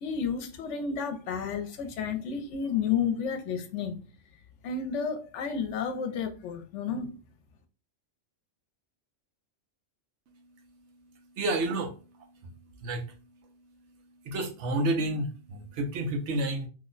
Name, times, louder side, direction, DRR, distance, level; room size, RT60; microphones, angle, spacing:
voice 1, 0.0-4.0 4.6-7.1, left 6 dB, 80° left, 0.9 m, -31 dB
voice 2, 11.4-11.9 12.8-13.0 14.3-16.7, right 2 dB, 75° right, 1.0 m, -29 dB
2.9 x 2.1 x 3.8 m
omnidirectional pair, 1.2 m